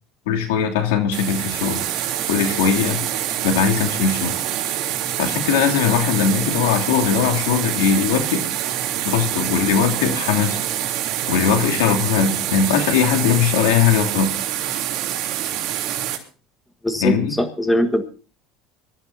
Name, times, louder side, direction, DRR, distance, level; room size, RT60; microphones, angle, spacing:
voice 1, 0.3-1.8 2.3-3.0 3.4-4.4 5.2-8.4 9.0-10.6 11.3-14.4 17.0-17.4, left 7 dB, 90° left, 3 dB, 2.8 m, -20 dB
sound 1, 1.1-16.2, right 11 dB, 55° right, 3.3 m, -25 dB
voice 2, 16.8-18.1, left 1 dB, 5° left, 8 dB, 1.6 m, -21 dB
24.5 x 13.5 x 2.7 m, 0.37 s
supercardioid pair, 120°, 0 cm